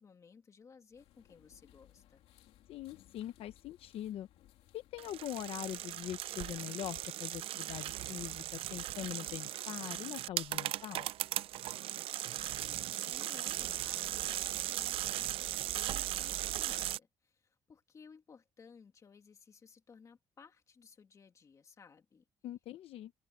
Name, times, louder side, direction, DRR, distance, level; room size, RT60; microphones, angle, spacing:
voice 1, 0.0-2.2 12.6-22.2, left 5 dB, 30° left, 2.7 m, -58 dB
sound 1, 0.9-6.9, left 13 dB, 90° left, 3.0 m, -64 dB
voice 2, 2.7-4.3 4.7-11.1 22.4-23.1, left 12 dB, 70° left, 0.9 m, -42 dB
sound 2, 5.0-17.0, right 13 dB, 65° right, 0.5 m, -38 dB
open air
cardioid pair, 150°, 10 cm